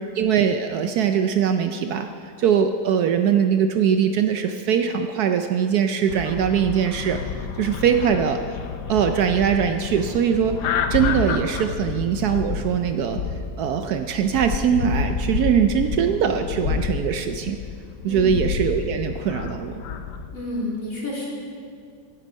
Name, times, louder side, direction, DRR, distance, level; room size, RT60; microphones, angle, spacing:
voice 1, 0.1-8.4 8.9-10.6 10.9-13.2 13.6-17.6 18.0-19.8, right 8 dB, 70° right, 6 dB, 1.0 m, -22 dB
sound 1, 6.1-20.4, left 6 dB, 75° left, 1.3 m, -29 dB
voice 2, 20.3-21.3, left 1 dB, 50° left, -5 dB, 3.3 m, -30 dB
16.5 x 8.2 x 5.2 m, 2.3 s
omnidirectional pair, 1.9 m